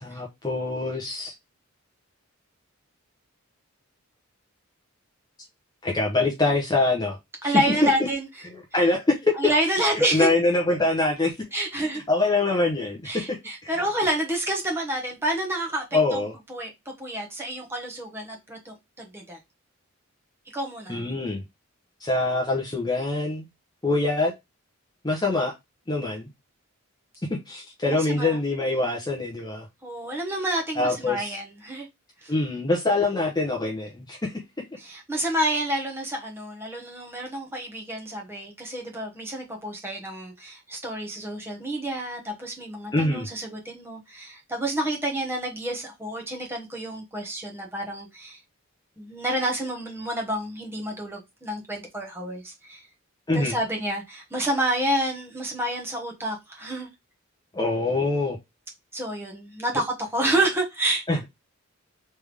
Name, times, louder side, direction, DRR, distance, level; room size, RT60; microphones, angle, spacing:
voice 1, 0.0-1.3 5.8-7.2 7.4-7.5 7.8-7.9 8.5-9.3 9.8-11.4 11.8-13.4 13.6-13.8 15.9-16.3 20.9-21.4 22.0-23.5 23.8-24.3 25.0-25.5 25.9-26.3 27.5-29.7 30.8-31.4 32.3-34.3 42.9-43.3 53.3-53.6 57.5-58.4 61.1-61.2, left 2 dB, 20° left, 0.7 m, -24 dB
voice 2, 7.4-8.3 9.4-10.3 11.5-12.0 13.0-16.2 16.5-16.7 17.0-19.4 20.5-21.0 27.8-28.4 28.7-29.0 29.8-31.9 32.2-32.3 34.8-48.4 49.0-52.8 53.3-56.9 58.9-61.0, right 1 dB, 10° right, 1.1 m, -29 dB
3.4 x 3.3 x 3.4 m
head